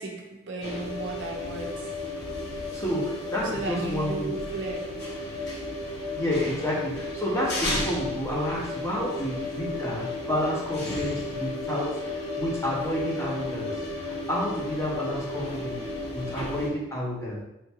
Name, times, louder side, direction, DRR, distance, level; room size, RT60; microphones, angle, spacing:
voice 1, 0.0-2.0 3.5-5.1, right 3 dB, 60° right, 0 dB, 0.6 m, -35 dB
sound 1, 0.6-16.7, left 2 dB, 50° left, 1.0 m, -33 dB
voice 2, 2.7-4.3 6.1-15.8 16.1-17.4, equal, 15° left, -5 dB, 0.9 m, -30 dB
3.5 x 2.5 x 4.3 m, 0.90 s
head